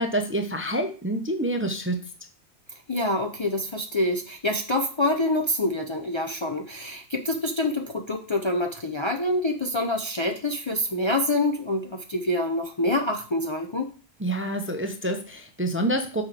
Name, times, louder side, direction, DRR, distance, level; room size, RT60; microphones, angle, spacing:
voice 1, 0.0-2.0 14.2-16.2, right 1 dB, 15° right, 5 dB, 0.6 m, -27 dB
voice 2, 2.9-13.9, left 1 dB, 30° left, 3 dB, 0.6 m, -26 dB
6.3 x 4.9 x 4.9 m, 0.38 s
omnidirectional pair, 1.1 m